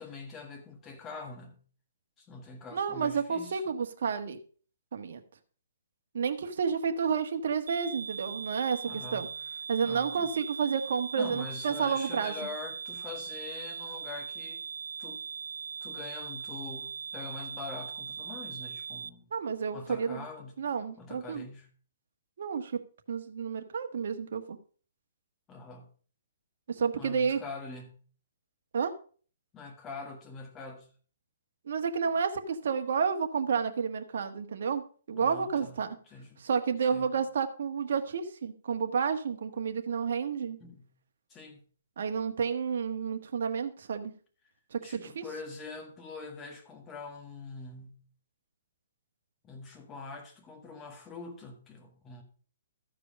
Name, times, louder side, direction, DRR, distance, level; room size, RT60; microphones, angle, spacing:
voice 1, 0.0-1.6 2.2-3.6 8.9-9.4 9.8-10.3 11.1-14.6 15.0-15.2 15.8-19.3 19.7-20.6 21.0-21.7 25.5-25.9 27.0-28.0 29.5-30.9 35.1-36.5 36.9-37.2 40.6-40.9 41.3-41.6 44.8-48.0 49.4-52.2, left 4 dB, 15° left, 1.8 m, -44 dB
voice 2, 2.7-4.4 4.9-5.2 6.1-9.3 9.7-12.3 19.3-20.2 20.6-21.4 22.4-22.8 23.1-24.6 26.7-27.4 28.7-28.9 31.7-36.0 36.4-40.6 42.0-44.1 44.7-45.2, right 6 dB, 65° right, 1.4 m, -30 dB
sound 1, 7.7-19.1, right 6 dB, 85° right, 0.4 m, -40 dB
13.5 x 4.9 x 5.2 m
hypercardioid pair, 165°, 0 cm